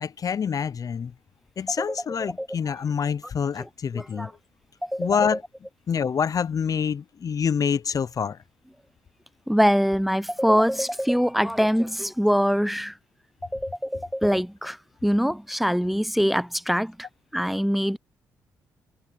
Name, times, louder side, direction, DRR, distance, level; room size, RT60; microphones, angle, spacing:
voice 1, 0.0-1.1 1.6-4.3 5.0-5.4 5.9-8.4, left 7 dB, 45° left, 0.6 m, -26 dB
voice 2, 3.9-4.3 4.8-5.2 9.5-12.9 13.5-17.1 17.3-18.0, equal, ahead, 0.9 m, -23 dB
supercardioid pair, 55°, 8 cm